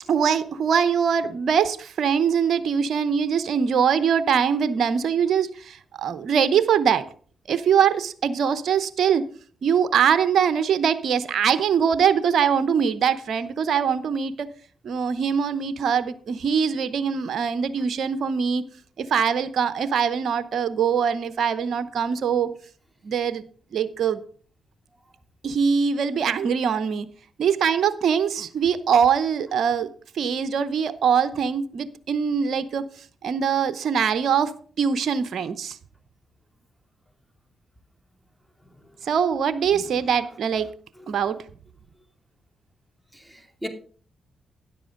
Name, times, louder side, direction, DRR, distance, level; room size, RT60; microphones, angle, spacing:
voice 1, 0.1-7.0 7.5-9.3 9.6-14.5 14.8-18.6 19.0-22.5 23.0-23.4 23.7-24.2 25.4-27.1 27.4-29.9 30.1-32.8 33.2-34.5 34.8-35.8 39.1-40.7 41.1-41.4, right 7 dB, 65° right, 0.8 m, -22 dB
voice 2, 38.6-39.0 39.7-40.2 40.5-40.6 40.9-41.2 43.1-43.7, equal, 5° right, 2.5 m, -41 dB
13.0 x 10.0 x 3.8 m
hypercardioid pair, 45°, 0 cm